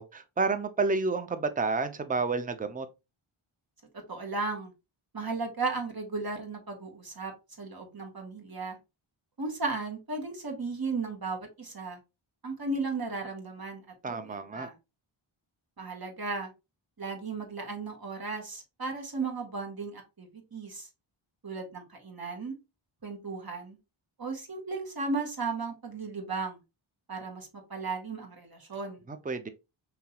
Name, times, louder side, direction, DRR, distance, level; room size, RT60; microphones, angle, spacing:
voice 1, 0.0-2.9 14.0-14.7 29.1-29.5, right 4 dB, 15° right, 0.5 m, -30 dB
voice 2, 4.1-4.7 5.1-7.3 7.6-8.8 9.4-12.0 12.4-13.8 14.1-14.7 15.8-16.5 17.0-20.9 21.4-22.5 23.0-23.8 24.2-26.6 27.1-29.0, right 3 dB, 45° right, 1.5 m, -35 dB
5.3 x 2.9 x 2.9 m
wide cardioid pair, 75°, 49 cm